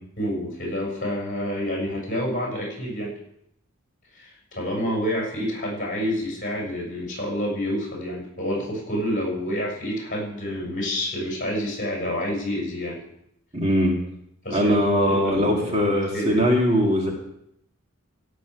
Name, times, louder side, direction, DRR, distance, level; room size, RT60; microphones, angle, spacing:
voice 1, 0.2-3.1 4.1-13.0 14.4-16.4, equal, 40° left, -2 dB, 6.5 m, -28 dB
voice 2, 13.5-14.0 14.5-17.1, equal, 30° right, 0 dB, 2.2 m, -21 dB
16.0 x 6.3 x 8.2 m, 0.76 s
head